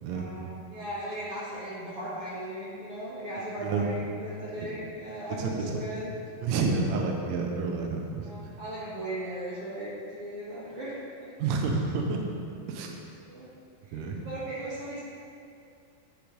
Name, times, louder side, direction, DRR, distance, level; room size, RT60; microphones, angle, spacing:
voice 1, 0.0-6.1 8.2-11.3 13.2-13.5 13.9-15.0, right 1 dB, 55° right, -8 dB, 1.7 m, -37 dB
voice 2, 5.4-5.8 6.4-8.3 11.4-12.2 12.7-12.9 13.9-14.2, right 4 dB, 90° right, 1 dB, 1.5 m, -29 dB
11.5 x 4.9 x 5.3 m, 2.4 s
omnidirectional pair, 4.6 m